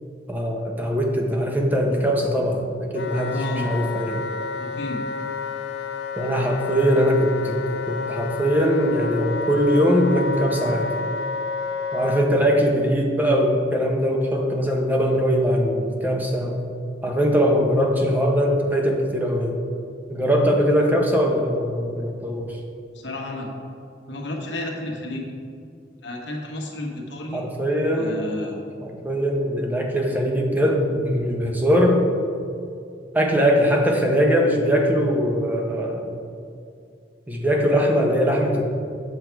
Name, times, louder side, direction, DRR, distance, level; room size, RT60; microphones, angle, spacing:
voice 1, 0.3-4.2 6.2-10.9 11.9-16.6 17.0-19.6 20.1-22.6 27.3-28.2 28.8-32.0 33.1-36.2 37.3-38.6, equal, 10° right, 1 dB, 0.9 m, -21 dB
Wind instrument woodwind instrument, 2.9-12.3, left 5 dB, 70° left, 0.5 m, -30 dB
voice 2, 3.3-3.7 4.6-5.0 22.9-23.5 24.1-25.2 26.0-27.4 27.9-28.6, left 1 dB, 90° left, 0 dB, 1.4 m, -32 dB
8.0 x 6.5 x 4.6 m, 2.3 s
head